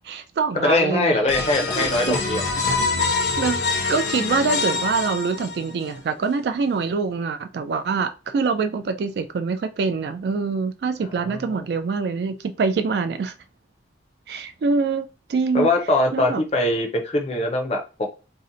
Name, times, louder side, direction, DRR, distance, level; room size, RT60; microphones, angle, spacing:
voice 1, 0.0-1.2 1.8-2.2 2.6-2.8 3.4-3.6 3.9-13.3 14.3-15.7 16.1-16.4, right 4 dB, 70° right, 0.3 m, -25 dB
voice 2, 0.6-2.4 11.2-11.6 15.5-17.8, left 2 dB, 35° left, 0.5 m, -22 dB
sound 1, 1.3-5.9, left 4 dB, 80° left, 0.8 m, -25 dB
2.7 x 2.1 x 3.7 m
head